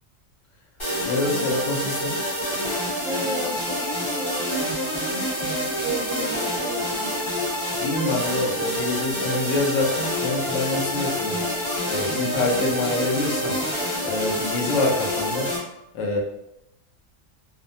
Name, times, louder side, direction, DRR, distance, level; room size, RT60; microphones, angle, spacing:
sound 1, 0.8-15.6, equal, 25° left, 1.0 m, -27 dB
voice 1, 1.1-2.2 7.8-11.4 11.9-13.6 14.0-15.5 15.9-16.2, left 2 dB, 75° left, 0 dB, 0.9 m, -26 dB
voice 2, 3.0-7.3, right 3 dB, 85° right, 1 dB, 1.0 m, -34 dB
2.6 x 2.1 x 2.6 m, 0.83 s
omnidirectional pair, 1.3 m